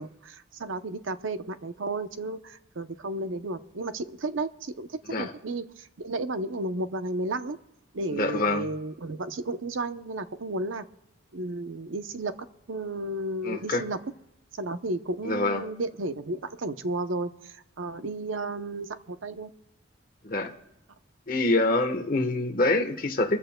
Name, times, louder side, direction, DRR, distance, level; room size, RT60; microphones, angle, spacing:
voice 1, 0.0-7.6 7.9-10.8 11.3-12.3 12.7-14.0 14.6-19.5, right 2 dB, 75° right, 10 dB, 0.7 m, -33 dB
voice 2, 8.1-8.7 13.4-13.8 15.2-15.7 20.2-20.5 21.3-23.4, left 2 dB, 45° left, 6 dB, 1.1 m, -25 dB
24.5 x 14.5 x 2.2 m, 0.91 s
head